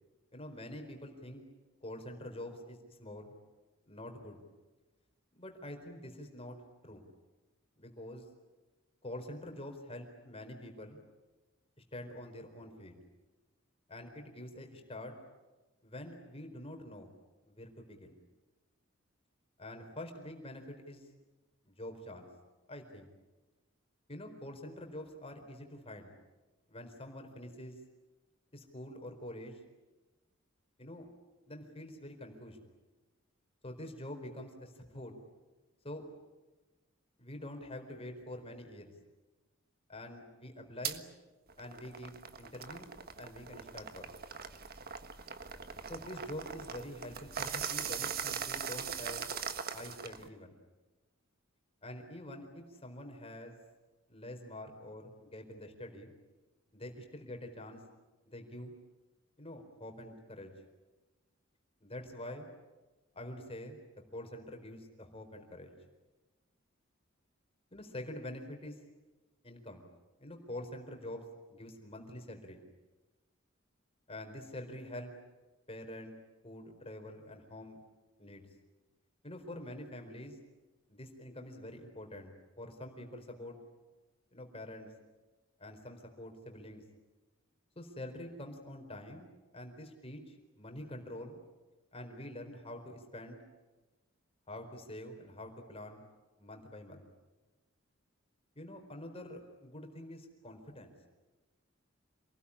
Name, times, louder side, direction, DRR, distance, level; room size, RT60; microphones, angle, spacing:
voice 1, 0.3-1.4 1.8-3.3 3.9-4.4 5.4-6.6 6.8-7.0 7.8-8.3 9.0-11.0 11.9-12.9 13.9-15.1 15.8-17.1 17.5-18.2 19.6-21.1 21.7-22.3 22.7-23.1 24.1-26.1 26.7-27.8 28.5-29.6 30.8-31.1 31.5-32.6 33.6-35.1 35.8-36.0 37.2-38.9 39.9-41.0 41.6-42.9 43.2-44.0 45.9-49.3 49.7-50.6 51.8-53.5 54.1-56.1 56.7-57.8 58.3-58.7 59.4-60.5 61.8-62.5 63.1-63.8 64.1-65.7 67.7-68.8 69.4-69.8 70.2-71.2 71.5-72.6 74.1-75.1 75.7-76.1 76.4-77.8 78.2-78.5 79.2-80.4 80.9-83.6 84.3-84.9 85.6-86.8 87.8-89.3 89.5-91.4 91.9-93.4 94.5-96.0 96.4-97.1 98.6-100.9, left 1 dB, 30° left, 4 dB, 4.4 m, -46 dB
sound 1, 40.8-41.0 41.5-50.3, right 7 dB, 50° right, 1.5 m, -40 dB
27.5 x 20.0 x 10.0 m, 1.2 s
head